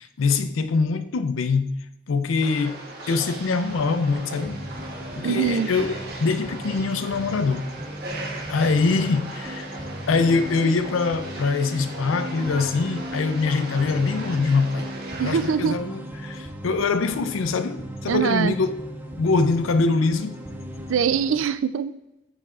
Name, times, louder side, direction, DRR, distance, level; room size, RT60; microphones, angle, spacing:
voice 1, 0.0-4.6 5.1-7.7 8.5-9.7 10.1-14.9 15.2-18.7 19.2-20.4, left 4 dB, 80° left, 0.5 m, -23 dB
sound 1, 2.4-15.5, right 2 dB, 55° right, 1.2 m, -38 dB
sound 2, 3.6-21.5, equal, 10° right, 0.5 m, -37 dB
voice 2, 5.2-5.7 15.2-15.8 18.1-18.5 20.9-22.0, right 7 dB, 80° right, 0.4 m, -23 dB
7.2 x 5.3 x 2.4 m
head